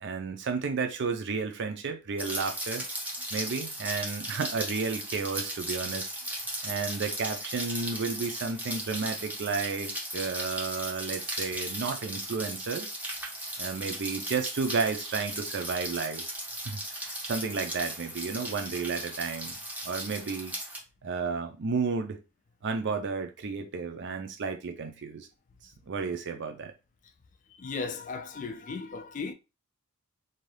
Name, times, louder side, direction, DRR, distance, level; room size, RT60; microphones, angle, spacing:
voice 1, 0.0-2.8 3.3-6.1 6.6-12.9 13.6-16.2 16.6-19.5 19.8-20.6 21.0-22.2 22.6-25.3 25.9-26.7, right 4 dB, 55° right, 0.5 m, -32 dB
Rain, 2.2-20.8, right 1 dB, 5° right, 0.6 m, -37 dB
voice 2, 27.5-29.3, left 4 dB, 35° left, 0.3 m, -36 dB
2.7 x 2.3 x 3.2 m
head